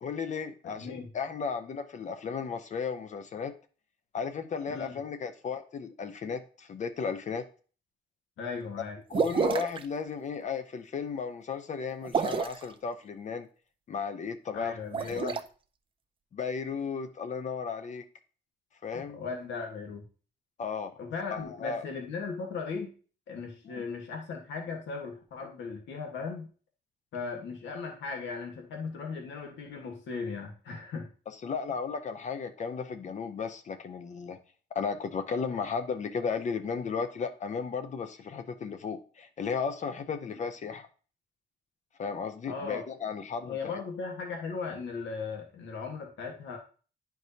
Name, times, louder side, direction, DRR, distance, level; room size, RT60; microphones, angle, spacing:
voice 1, 0.0-3.5 4.1-7.4 9.1-13.5 13.9-14.8 15.1-15.3 16.3-18.0 18.8-19.2 20.6-20.9 21.3-21.8 23.6-23.8 31.4-34.4 34.7-40.9 42.0-43.7, left 5 dB, 40° left, 9 dB, 0.6 m, -34 dB
voice 2, 0.6-1.1 4.7-5.0 8.4-9.0 14.5-15.4 18.9-20.0 21.0-22.9 23.3-26.5 27.1-31.1 42.5-42.8 43.4-46.6, left 5 dB, 85° left, 2 dB, 1.4 m, -37 dB
sound 1, 9.1-9.8 12.0-12.6 14.8-15.4, right 6 dB, 30° right, 0.4 m, -29 dB
10.0 x 4.6 x 2.7 m, 0.39 s
wide cardioid pair, 160°, 19 cm